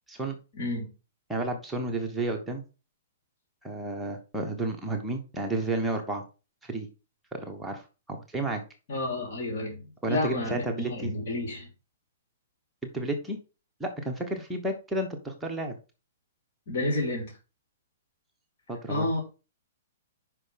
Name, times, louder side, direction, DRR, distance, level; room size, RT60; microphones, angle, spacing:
voice 1, 0.5-0.9 8.9-11.7 16.7-17.3 18.9-19.2, left 2 dB, 55° left, 3.0 m, -30 dB
voice 2, 1.3-2.6 3.6-6.2 6.6-6.9 7.3-7.8 8.1-8.6 10.0-11.1 12.9-13.4 13.8-15.8 18.7-19.2, right 2 dB, 5° right, 1.2 m, -31 dB
5.7 x 5.0 x 5.8 m
hypercardioid pair, 145°, 0 cm